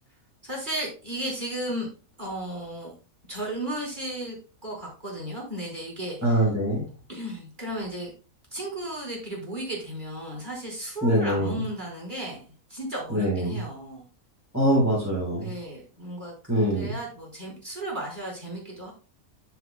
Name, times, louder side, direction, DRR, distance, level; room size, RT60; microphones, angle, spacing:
voice 1, 0.4-1.9 2.2-2.9 3.3-4.4 4.6-6.4 7.1-8.1 8.5-14.0 15.4-18.9, right 1 dB, 30° right, -3 dB, 5.2 m, -34 dB
voice 2, 6.2-6.9 11.0-11.6 13.1-13.6 14.5-15.5 16.5-16.9, right 1 dB, 10° right, -4 dB, 3.8 m, -23 dB
14.5 x 6.0 x 2.2 m, 0.35 s
omnidirectional pair, 1.5 m